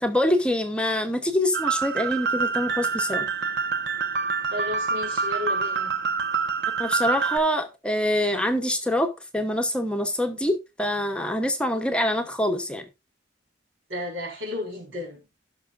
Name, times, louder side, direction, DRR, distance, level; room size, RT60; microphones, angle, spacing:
voice 1, 0.0-3.3 6.8-9.1 9.3-12.8, left 1 dB, 5° left, 0.9 m, -25 dB
sound 1, 1.5-7.4, right 5 dB, 65° right, 1.1 m, -26 dB
voice 2, 4.5-6.0 13.9-15.2, left 2 dB, 80° right, 4.6 m, -33 dB
16.5 x 6.0 x 2.5 m
head